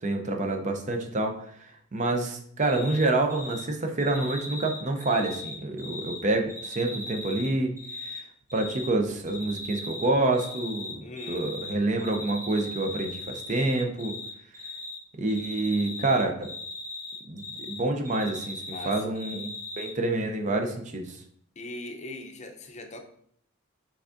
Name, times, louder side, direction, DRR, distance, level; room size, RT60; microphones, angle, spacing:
voice 1, 0.0-1.3 1.9-7.7 8.0-8.2 8.5-11.0 11.3-14.1 15.2-16.5 17.3-19.5 19.8-21.2, right 2 dB, 35° right, 4 dB, 0.6 m, -27 dB
Cricket, 2.6-3.0 3.3-3.6 4.0-6.2 6.5-8.2 8.5-8.9 9.3-10.1 10.3-11.7 12.0-14.3 14.5-15.0 15.3-17.8 18.0-19.9, left 2 dB, 15° right, 1.3 m, -39 dB
voice 2, 11.0-11.5 18.7-19.1 21.6-23.0, left 2 dB, 35° left, 4 dB, 0.6 m, -40 dB
5.8 x 3.6 x 2.6 m, 0.65 s
head